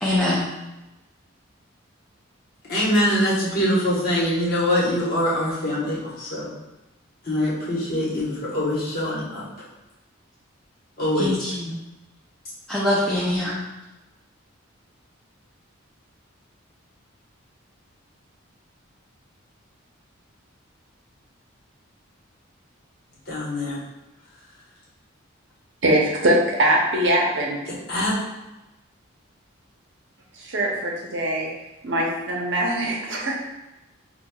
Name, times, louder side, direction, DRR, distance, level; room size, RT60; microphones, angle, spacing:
voice 1, 0.0-0.5 11.2-11.8 12.7-13.6, left 1 dB, 5° left, -7 dB, 0.4 m, -23 dB
voice 2, 2.7-6.5 7.2-9.5 11.0-11.4 23.3-23.8 27.7-28.2, left 1 dB, 45° left, -7 dB, 1.1 m, -23 dB
voice 3, 25.8-27.6 30.4-31.5 31.8-33.4, right 1 dB, 55° right, -2 dB, 0.7 m, -22 dB
5.9 x 2.3 x 2.3 m, 1.0 s
head